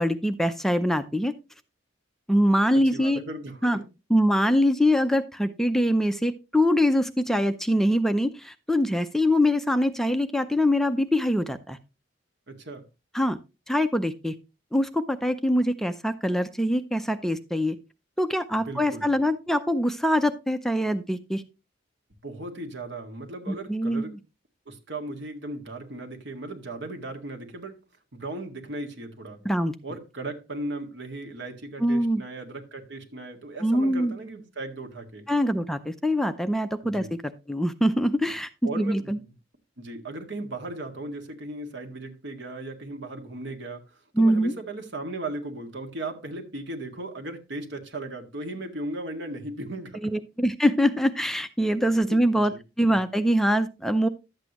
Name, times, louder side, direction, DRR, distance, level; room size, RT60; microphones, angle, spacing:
voice 1, 0.0-1.3 2.3-3.2 3.6-3.8 4.1-11.8 13.1-13.4 13.7-14.3 14.7-17.8 18.2-21.4 23.5-24.2 29.4-29.7 31.8-32.2 33.6-34.1 35.3-37.1 37.5-38.5 38.8-39.2 44.2-44.5 50.0-52.5 52.8-54.1, equal, ahead, 0.5 m, -23 dB
voice 2, 2.9-3.8 12.5-12.8 18.7-19.1 22.2-24.2 24.7-27.8 28.1-29.4 29.8-35.3 36.8-37.1 38.6-39.3 39.8-43.9 44.2-50.1 52.1-52.2 52.5-52.6, right 2 dB, 65° right, 1.9 m, -37 dB
11.5 x 8.2 x 2.9 m
head